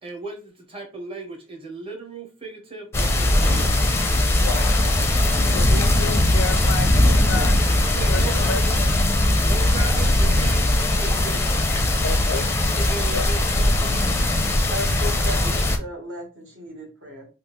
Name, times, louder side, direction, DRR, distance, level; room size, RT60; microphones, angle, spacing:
voice 1, 0.0-3.8 7.8-8.6 9.4-11.9 12.3-14.1, right 3 dB, 30° right, 0.9 m, -36 dB
sound 1, 2.9-15.8, left 1 dB, 15° left, 0.5 m, -20 dB
voice 2, 4.4-4.9 5.5-7.6 8.1-8.9 12.0-12.4 13.1-13.3, left 4 dB, 85° left, 0.5 m, -31 dB
voice 3, 14.7-17.3, left 1 dB, 70° right, 1.3 m, -35 dB
3.6 x 2.3 x 3.0 m
head